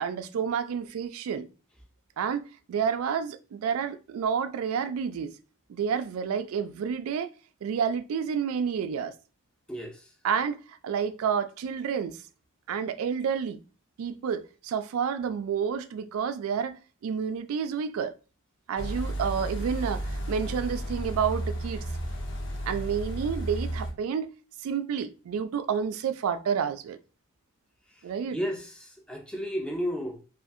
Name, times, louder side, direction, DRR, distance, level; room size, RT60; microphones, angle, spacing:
voice 1, 0.0-1.5 2.2-2.4 2.7-5.3 5.7-7.3 7.6-9.1 10.2-12.2 12.7-13.6 14.0-18.1 18.7-21.8 22.7-24.3 24.6-27.0 28.0-28.4, right 7 dB, 85° right, 0.3 m, -29 dB
voice 2, 9.7-10.1 28.3-30.2, equal, 5° left, 0.4 m, -33 dB
sound 1, 18.8-23.9, right 1 dB, 60° left, 0.6 m, -33 dB
2.6 x 2.4 x 2.4 m
head